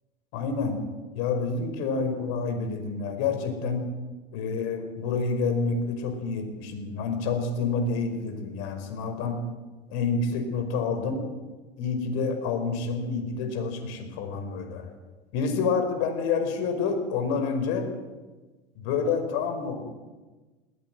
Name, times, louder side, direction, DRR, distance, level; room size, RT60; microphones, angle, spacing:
voice 1, 0.3-0.8 1.1-3.8 4.3-9.4 9.9-11.2 11.8-14.8 15.3-17.9 18.8-19.8, left 4 dB, 55° left, 6 dB, 5.0 m, -28 dB
19.5 x 16.0 x 9.4 m, 1.3 s
hypercardioid pair, 85°, 31 cm